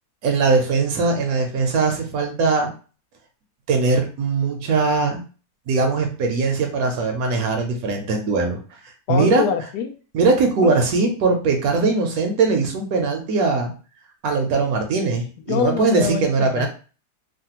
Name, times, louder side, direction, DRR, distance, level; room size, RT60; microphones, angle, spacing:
voice 1, 0.2-2.7 3.7-5.2 5.7-8.6 8.8-9.4 10.1-13.7 14.2-16.7, right 3 dB, 70° right, 4 dB, 1.0 m, -20 dB
voice 2, 9.1-9.9 10.6-10.7 15.5-16.7, left 7 dB, 80° left, 6 dB, 1.1 m, -25 dB
3.2 x 2.2 x 2.8 m, 0.37 s
omnidirectional pair, 1.7 m